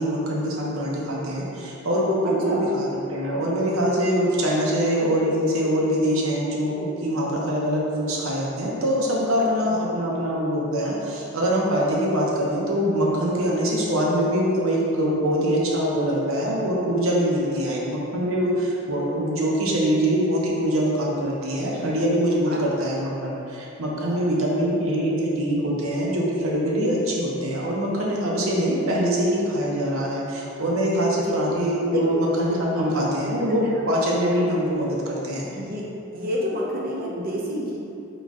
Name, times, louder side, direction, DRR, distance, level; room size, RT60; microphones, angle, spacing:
voice 1, 0.0-35.5 37.0-37.1, equal, 80° right, -3 dB, 0.8 m, -23 dB
voice 2, 2.2-2.7 9.4-9.5 17.7-17.8 22.5-22.6 24.0-24.2 31.1-31.2 31.9-32.2 32.9-33.0 33.6-33.8 35.5-35.8 36.1-37.8, right 1 dB, 45° right, -3 dB, 0.6 m, -29 dB
3.8 x 3.1 x 3.6 m, 2.7 s
head